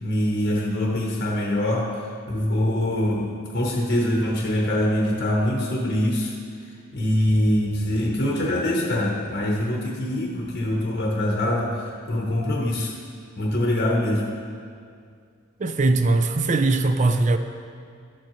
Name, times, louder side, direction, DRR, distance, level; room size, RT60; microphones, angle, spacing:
voice 1, 0.0-6.4 6.9-12.9 13.4-14.4, left 1 dB, 45° left, -1 dB, 0.9 m, -24 dB
voice 2, 15.6-17.4, right 2 dB, 35° right, 8 dB, 0.4 m, -20 dB
13.0 x 7.3 x 3.1 m, 2.2 s
head